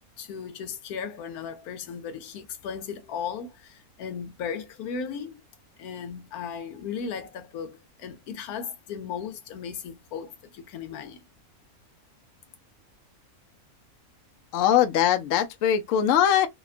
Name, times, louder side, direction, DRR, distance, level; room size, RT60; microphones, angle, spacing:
voice 1, 0.2-5.4 5.8-11.3, left 6 dB, 85° left, 1.2 m, -36 dB
voice 2, 14.5-16.5, left 10 dB, 70° left, 0.9 m, -21 dB
2.9 x 2.2 x 2.4 m
omnidirectional pair, 1.5 m